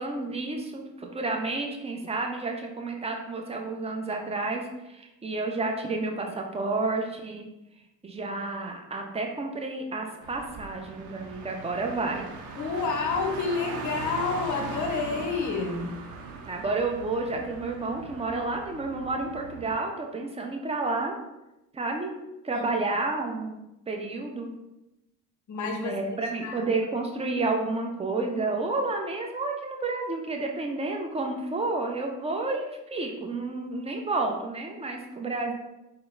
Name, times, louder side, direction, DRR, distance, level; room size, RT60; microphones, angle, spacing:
voice 1, 0.0-7.5 8.0-12.3 15.2-15.3 16.5-21.2 21.7-22.2 22.4-23.6 23.9-24.5 25.8-35.5, right 3 dB, 15° right, 2 dB, 0.6 m, -30 dB
Car, 10.2-19.7, right 3 dB, 70° right, 0.7 m, -40 dB
voice 2, 12.6-15.9 22.5-22.6 25.5-26.0 26.4-26.7, left 4 dB, 40° left, 4 dB, 0.7 m, -29 dB
3.8 x 2.1 x 3.8 m, 0.93 s
hypercardioid pair, 60°, 46 cm